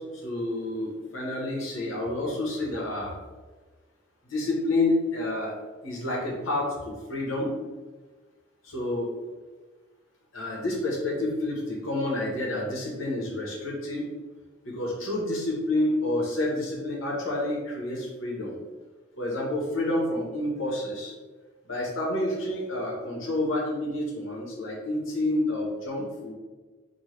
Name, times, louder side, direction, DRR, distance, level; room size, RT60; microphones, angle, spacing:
voice 1, 0.0-3.2 4.2-5.5 5.8-7.6 8.6-9.1 10.3-14.0 14.6-18.6 19.2-21.1 21.6-26.3, left 1 dB, 80° left, -2 dB, 1.2 m, -29 dB
5.4 x 2.4 x 3.2 m, 1.3 s
head